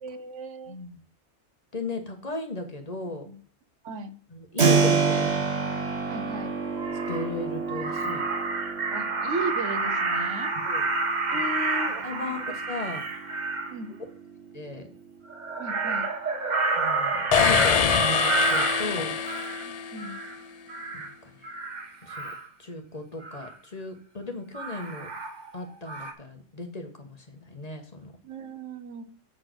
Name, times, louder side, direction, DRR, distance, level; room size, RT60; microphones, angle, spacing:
voice 1, 0.0-0.8 3.3-3.4 3.8-4.1 6.0-6.5 8.9-10.5 11.3-12.4 13.7-13.9 15.6-16.1 19.7-20.2 28.2-29.0, right 2 dB, 85° right, 10 dB, 1.2 m, -36 dB
voice 2, 0.7-1.0 1.7-3.3 4.3-5.5 7.1-8.2 10.7-10.9 11.3-11.4 12.0-13.1 14.5-14.9 16.7-19.1 20.9-21.6 22.0-22.3 22.6-25.1 25.5-28.1, left 2 dB, 35° left, 4 dB, 1.3 m, -36 dB
Keyboard (musical), 4.6-15.3, right 5 dB, 65° right, 1.5 m, -29 dB
Crow, 6.3-6.4 6.8-7.3 7.7-13.7 15.3-19.6 20.0-20.4 20.7-21.1 21.4-22.5 23.2-23.5 24.5-25.6 25.9-26.1, right 3 dB, 40° right, 1.1 m, -29 dB
sound 1, 17.3-20.1, left 7 dB, 50° left, 0.4 m, -24 dB
7.9 x 4.6 x 6.1 m, 0.42 s
omnidirectional pair, 1.2 m